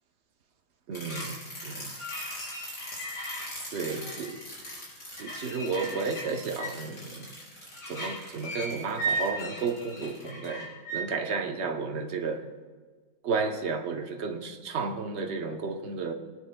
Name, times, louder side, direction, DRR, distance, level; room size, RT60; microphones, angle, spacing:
sound 1, 0.9-11.0, right 1 dB, 70° left, 4.6 m, -36 dB
voice 1, 0.9-1.9 3.7-4.4 5.1-7.3 7.9-12.5 13.2-16.1, right 4 dB, 50° right, 4 dB, 0.9 m, -32 dB
22.5 x 9.4 x 2.2 m, 1.5 s
omnidirectional pair, 1.8 m